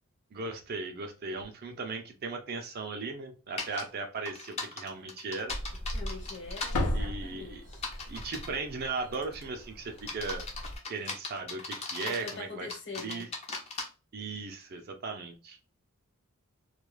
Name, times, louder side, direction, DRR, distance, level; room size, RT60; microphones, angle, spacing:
voice 1, 0.3-5.5 6.9-7.6 8.1-10.4 10.9-12.7 13.0-13.3 14.1-15.6, right 3 dB, 45° right, 0.5 m, -37 dB
Slam, 3.5-4.2 4.5-4.6 5.0-5.1 5.9-6.3 6.6-7.9 10.5-10.6 10.9-11.1 12.6-12.8, left 2 dB, 85° left, 0.7 m, -37 dB
sound 1, 3.6-3.8 4.2-6.7 7.7-8.6 9.1-9.4 10.0-12.4 12.7-13.8, left 3 dB, 30° left, 0.5 m, -38 dB
sound 2, 5.5-10.8, equal, 70° right, 0.8 m, -39 dB
voice 2, 5.9-7.8 12.0-13.3, left 4 dB, 55° left, 1.1 m, -43 dB
2.3 x 2.3 x 3.0 m
head